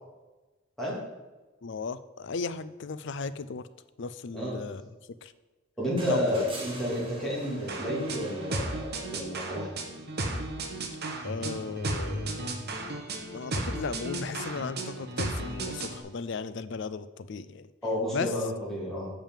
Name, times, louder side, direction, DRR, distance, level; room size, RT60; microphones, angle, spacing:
voice 1, 1.6-3.6 4.0-4.8 5.2-5.3 6.1-6.2 11.2-12.6 13.3-17.7 18.1-18.3, left 4 dB, 60° left, 13 dB, 0.5 m, -36 dB
voice 2, 5.8-9.7 17.8-19.1, equal, ahead, -7 dB, 2.9 m, -31 dB
sound 1, 6.0-9.3 10.8-10.9, right 1 dB, 25° right, 1.6 m, -43 dB
sound 2, 7.7-16.0, right 2 dB, 50° right, 1.2 m, -34 dB
7.3 x 5.3 x 7.3 m, 1.2 s
head